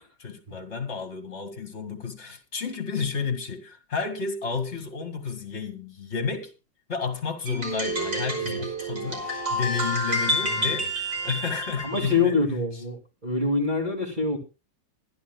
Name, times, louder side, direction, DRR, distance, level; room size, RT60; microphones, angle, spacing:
voice 1, 0.2-6.5 6.9-12.4 12.7-12.8, left 5 dB, 40° left, 2.1 m, -31 dB
sound 1, 7.5-12.2, equal, 45° right, 5.5 m, -29 dB
voice 2, 10.4-10.7 11.8-14.4, left 3 dB, 25° right, 2.6 m, -26 dB
24.5 x 11.0 x 2.2 m
omnidirectional pair, 1.9 m